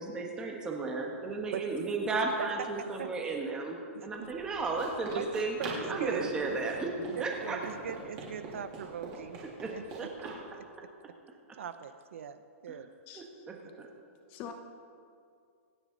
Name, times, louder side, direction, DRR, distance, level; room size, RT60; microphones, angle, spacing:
voice 1, 0.0-5.6 5.9-6.9 7.2-7.6 9.6-10.3 11.5-11.6 12.7-12.8 13.1-13.9, right 3 dB, 10° right, 1 dB, 1.5 m, -34 dB
voice 2, 2.8-3.1 4.2-4.3 5.2-5.3 5.6-6.3 7.2-9.4 9.7-10.1 11.6-12.9, right 8 dB, 65° right, 11 dB, 0.8 m, -40 dB
Run, 4.2-10.4, right 3 dB, 25° right, 3.5 m, -43 dB
voice 3, 13.1-13.5 14.3-14.5, left 6 dB, 20° left, 5 dB, 1.1 m, -43 dB
26.0 x 9.4 x 4.0 m, 2.3 s
hypercardioid pair, 175°, 8 cm